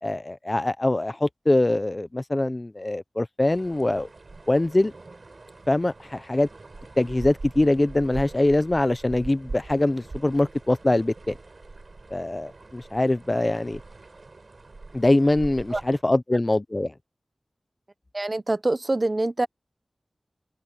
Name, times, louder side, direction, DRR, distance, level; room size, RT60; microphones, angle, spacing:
voice 1, 0.0-4.1 4.5-4.9 5.7-6.5 7.0-11.4 12.1-13.8 14.9-16.9, left 2 dB, 35° left, 0.9 m, -23 dB
sound 1, 3.5-16.0, right 3 dB, 65° right, 4.5 m, -42 dB
voice 2, 18.1-19.5, right 2 dB, 40° right, 1.1 m, -25 dB
open air
wide cardioid pair, 50°, 0 cm